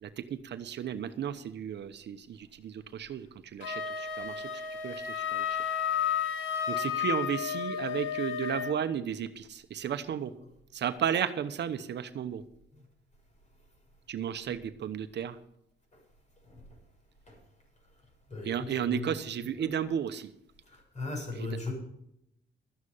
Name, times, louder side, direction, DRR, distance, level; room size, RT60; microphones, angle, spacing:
voice 1, 0.0-5.6 5.9-6.2 6.7-10.3 10.7-12.4 14.1-15.4 18.4-20.3 21.3-21.6, right 9 dB, 60° right, 11 dB, 0.9 m, -34 dB
Wind instrument woodwind instrument, 3.6-8.8, left 8 dB, 80° left, 1.8 m, -32 dB
voice 2, 18.3-19.7 20.7-21.7, left 3 dB, 35° left, 2 dB, 6.7 m, -39 dB
13.0 x 9.7 x 5.5 m, 0.78 s
cardioid pair, 90°, 20 cm